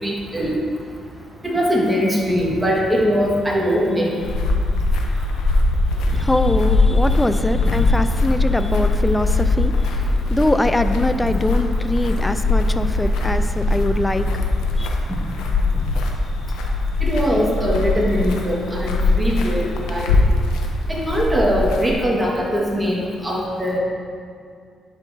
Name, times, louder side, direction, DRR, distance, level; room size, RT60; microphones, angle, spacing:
voice 1, 0.0-0.6 1.4-4.1 17.0-20.2 20.9-23.8, equal, 10° right, -4 dB, 1.7 m, -21 dB
sound 1, 4.2-22.0, left 2 dB, 85° left, 0.7 m, -21 dB
voice 2, 5.9-14.9, left 1 dB, 10° left, 9 dB, 0.3 m, -23 dB
11.0 x 5.4 x 2.8 m, 2.3 s
cardioid pair, 90°, 0 cm